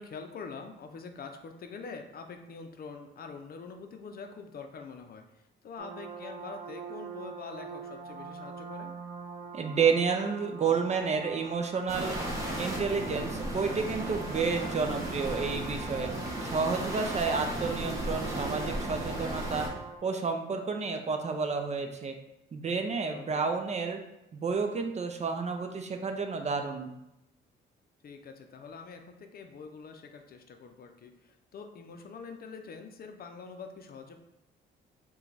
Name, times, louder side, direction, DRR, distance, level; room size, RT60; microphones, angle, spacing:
voice 1, 0.0-5.2 5.6-9.0 17.2-17.5 23.1-23.5 28.0-34.2, left 5 dB, 50° left, 5 dB, 0.5 m, -45 dB
sound 1, 5.8-20.0, right 5 dB, 75° right, 0.6 m, -44 dB
voice 2, 9.5-12.2 12.6-16.1 16.4-19.7 20.0-22.1 22.5-24.0 24.3-26.9, right 5 dB, 35° right, 5 dB, 0.5 m, -30 dB
sound 2, 11.9-19.7, right 1 dB, 15° right, 1.2 m, -35 dB
4.4 x 2.3 x 3.9 m, 0.89 s
cardioid pair, 90°, 20 cm